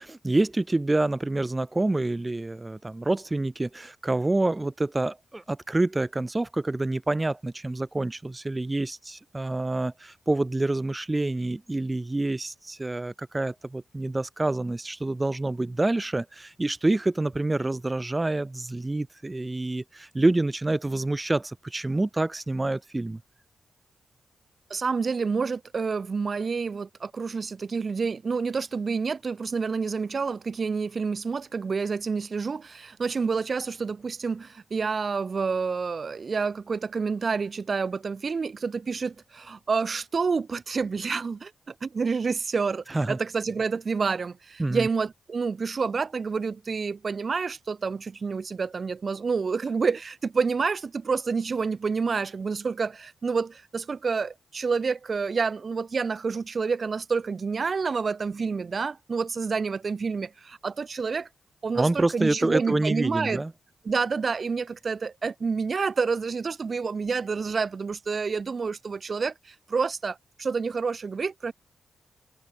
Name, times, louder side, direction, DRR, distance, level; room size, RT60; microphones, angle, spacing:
voice 1, 0.0-23.2 42.9-43.2 44.6-44.9 61.8-63.5, right 2 dB, 25° right, 2.8 m, -27 dB
voice 2, 24.7-61.3 61.6-63.4 63.8-71.5, right 5 dB, 55° right, 3.0 m, -28 dB
supercardioid pair, 45°, 0 cm